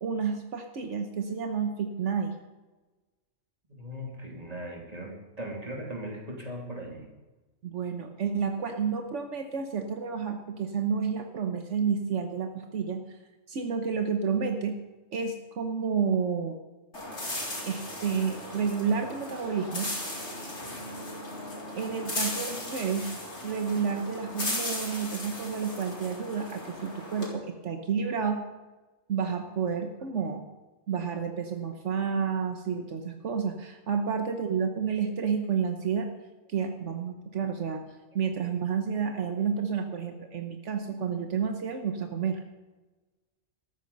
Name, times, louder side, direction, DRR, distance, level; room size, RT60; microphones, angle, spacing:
voice 1, 0.0-2.3 7.6-13.2 13.5-14.8 15.1-16.6 17.7-19.9 21.7-23.1 23.4-28.4 29.1-30.4 30.9-36.1 36.5-37.8 38.1-42.4, right 6 dB, 75° right, 5 dB, 1.4 m, -30 dB
voice 2, 3.7-7.1, equal, 30° right, 1 dB, 2.8 m, -39 dB
sound 1, 16.9-27.3, left 1 dB, 75° left, 4.2 m, -37 dB
14.5 x 13.0 x 5.4 m, 1.2 s
omnidirectional pair, 1.2 m